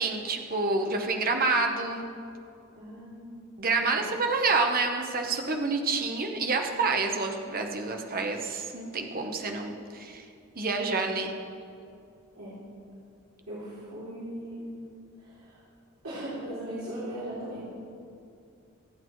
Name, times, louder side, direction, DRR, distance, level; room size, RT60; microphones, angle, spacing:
voice 1, 0.0-2.1 3.6-10.2 10.6-11.3, right 3 dB, 45° right, 3 dB, 1.0 m, -28 dB
voice 2, 2.7-3.3 3.8-4.1 12.3-12.6 13.5-14.6 15.2-15.6 16.0-17.7, right 1 dB, 75° right, -10 dB, 3.2 m, -39 dB
24.0 x 8.7 x 3.1 m, 2.5 s
head